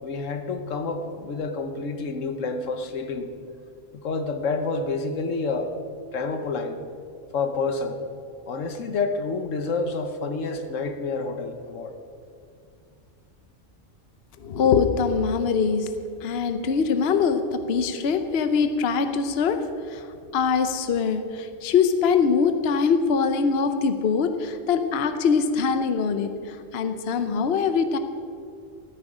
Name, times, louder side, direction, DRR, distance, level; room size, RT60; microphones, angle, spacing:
voice 1, 0.0-3.3 4.0-5.8 6.1-6.8 7.3-8.0 8.5-11.9, left 3 dB, 80° left, 8 dB, 1.3 m, -28 dB
voice 2, 14.4-15.9 16.2-20.1 20.3-28.0, left 5 dB, 60° left, 8 dB, 1.0 m, -23 dB
15.5 x 13.5 x 5.0 m, 2.4 s
omnidirectional pair, 1.3 m